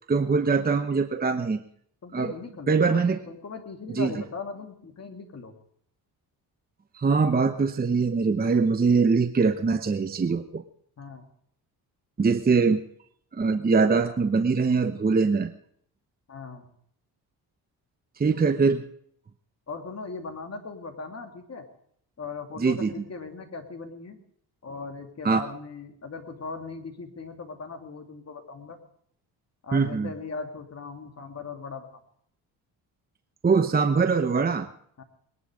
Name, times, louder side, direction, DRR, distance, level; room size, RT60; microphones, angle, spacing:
voice 1, 0.1-1.6 2.1-2.3 2.7-3.2 3.9-4.1 6.9-10.6 12.2-12.8 13.3-15.5 18.2-18.8 22.6-22.9 25.2-25.4 29.7-30.1 33.4-34.7, right 4 dB, 20° right, 8 dB, 0.8 m, -22 dB
voice 2, 2.0-5.5 11.0-11.2 16.3-16.7 19.7-21.7 22.2-24.2 24.6-28.8 29.6-31.9 35.0-35.1, left 4 dB, 40° left, 4 dB, 2.7 m, -39 dB
21.0 x 11.0 x 5.1 m, 0.67 s
cardioid pair, 95°, 41 cm